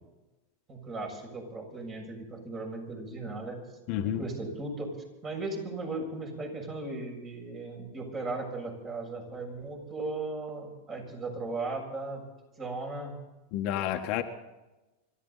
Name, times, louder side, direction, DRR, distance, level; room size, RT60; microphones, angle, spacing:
voice 1, 0.7-3.6 4.0-12.2 12.6-13.1, right 2 dB, 30° right, 2 dB, 7.0 m, -37 dB
voice 2, 3.9-4.2 13.5-14.2, left 11 dB, 50° left, 5 dB, 1.5 m, -30 dB
26.0 x 13.5 x 4.1 m, 1.1 s
hypercardioid pair, 120°, 0 cm